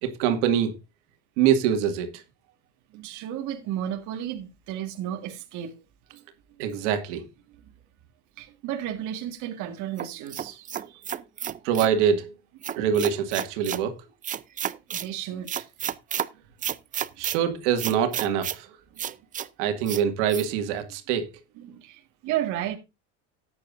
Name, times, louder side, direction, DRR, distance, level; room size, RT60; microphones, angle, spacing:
voice 1, 0.0-0.8 1.4-2.1 6.6-7.3 11.6-12.3 12.8-14.0 17.2-18.7 19.6-21.3, right 8 dB, 75° right, 2.1 m, -24 dB
voice 2, 2.9-5.7 6.1-6.2 8.4-11.0 14.9-15.7 21.6-22.8, right 11 dB, 55° right, 1.8 m, -33 dB
sound 1, 10.0-11.9 12.6-13.8 14.2-15.1 15.5-16.3 16.6-17.4 17.8-18.6 19.0-19.5 19.9-20.0 20.3-20.5, right 9 dB, 25° right, 0.5 m, -31 dB
13.5 x 9.5 x 2.6 m
supercardioid pair, 115°, 36 cm